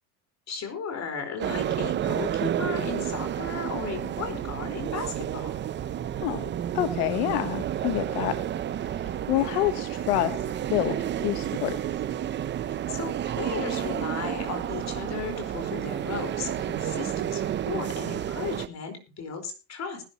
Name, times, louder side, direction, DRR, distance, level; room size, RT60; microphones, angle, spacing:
voice 1, 0.5-5.6 12.9-20.0, left 5 dB, 35° left, 6 dB, 4.6 m, -35 dB
sound 1, 1.4-18.7, right 10 dB, 25° right, 0.6 m, -31 dB
voice 2, 6.7-8.3 8.8-10.3 10.7-11.7 16.7-16.8, left 16 dB, 70° left, 10 dB, 1.3 m, -27 dB
20.0 x 11.0 x 3.0 m, 0.30 s
supercardioid pair, 125°, 47 cm